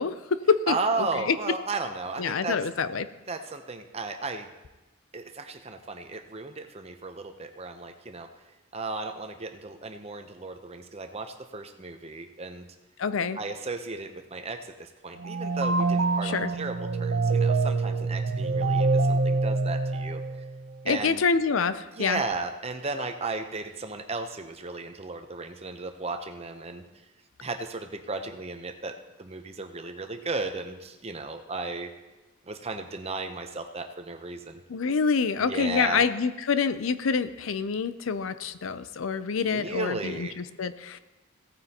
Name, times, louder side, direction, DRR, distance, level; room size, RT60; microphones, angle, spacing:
voice 1, 0.0-1.4 2.2-3.1 13.0-13.4 16.2-16.5 20.8-22.2 34.7-41.0, left 5 dB, 75° left, 12 dB, 0.5 m, -27 dB
voice 2, 0.7-2.6 3.3-4.5 5.1-8.3 8.7-12.7 13.4-20.2 20.9-21.2 21.9-26.8 27.4-31.9 32.5-34.6 35.4-36.0 39.5-40.4, right 3 dB, 30° right, 6 dB, 0.8 m, -35 dB
sound 1, 15.2-20.6, right 3 dB, 65° right, 0.6 m, -25 dB
17.0 x 9.4 x 2.9 m, 1.1 s
head